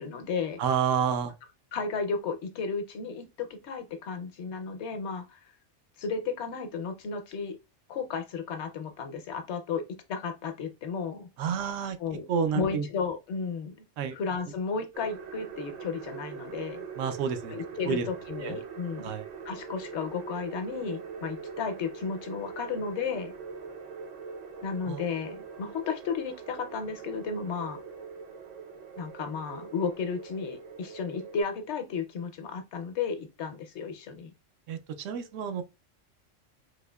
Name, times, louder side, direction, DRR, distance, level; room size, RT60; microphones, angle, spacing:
voice 1, 0.0-0.6 1.7-5.4 6.0-7.6 7.9-9.8 10.1-11.3 12.0-12.3 12.5-13.7 14.1-16.8 17.5-19.1 19.4-23.3 24.6-27.8 29.0-34.3, left 5 dB, 65° left, 0.9 m, -33 dB
voice 2, 0.6-1.3 11.4-12.0 12.3-12.9 14.0-14.2 17.0-17.5 17.9-18.1 18.4-18.6 19.0-19.2 24.9-25.0 34.7-35.6, right 7 dB, 80° right, 0.9 m, -29 dB
sound 1, 14.9-31.4, right 5 dB, 55° right, 0.4 m, -42 dB
4.2 x 2.7 x 2.2 m
omnidirectional pair, 1.3 m